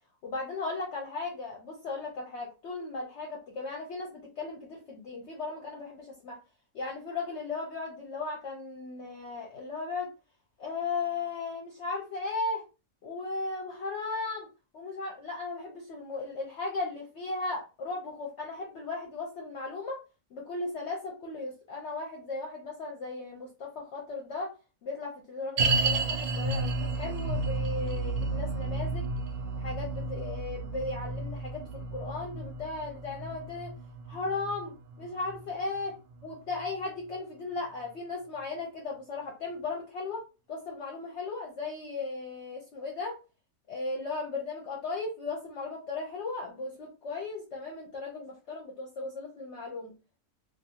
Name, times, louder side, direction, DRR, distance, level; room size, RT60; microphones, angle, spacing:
voice 1, 0.2-6.4 6.7-10.1 10.6-12.6 13.0-14.5 14.7-20.0 20.3-24.5 24.8-29.1 29.6-33.8 34.1-43.2 43.7-49.9, left 3 dB, 60° left, -1 dB, 0.8 m, -36 dB
sound 1, 25.6-36.9 37.1-37.2 37.9-38.0, right 3 dB, 80° right, 1.0 m, -32 dB
2.5 x 2.3 x 2.7 m, 0.31 s
omnidirectional pair, 1.5 m